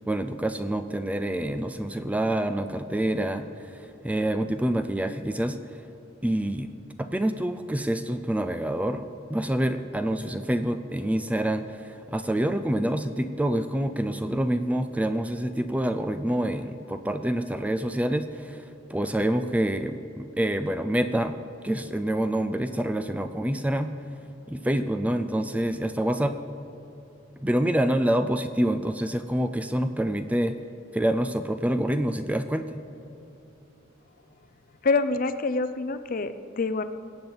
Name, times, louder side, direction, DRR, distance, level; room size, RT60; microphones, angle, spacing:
voice 1, 0.1-5.6 6.2-6.7 7.0-21.4 21.6-23.9 24.5-26.4 27.4-30.6 30.9-32.8, right 1 dB, 5° right, 9 dB, 0.4 m, -27 dB
voice 2, 34.8-36.8, left 3 dB, 45° left, 11 dB, 0.5 m, -26 dB
21.5 x 8.7 x 4.0 m, 3.0 s
head